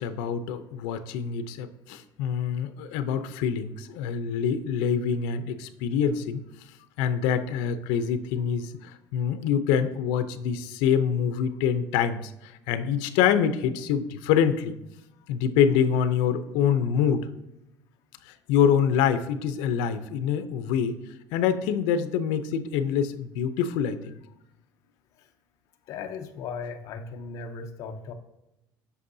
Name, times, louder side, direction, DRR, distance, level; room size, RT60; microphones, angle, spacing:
voice 1, 0.0-6.4 7.0-14.7 15.3-17.3 18.3-21.0 21.3-24.2, left 8 dB, 85° left, 11 dB, 0.6 m, -25 dB
voice 2, 25.9-28.1, left 5 dB, 45° left, 4 dB, 0.7 m, -37 dB
8.2 x 6.1 x 2.7 m, 0.91 s
cardioid pair, 175°, 8 cm